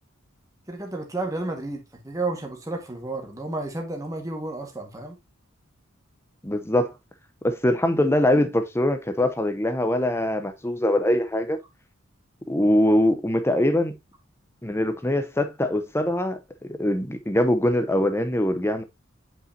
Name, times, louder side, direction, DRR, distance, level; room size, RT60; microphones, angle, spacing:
voice 1, 0.7-5.2, right 2 dB, 15° right, 1.7 m, -32 dB
voice 2, 6.4-6.9 7.4-11.6 12.5-13.9 14.6-18.8, left 1 dB, 10° left, 0.8 m, -23 dB
7.9 x 5.5 x 2.8 m
head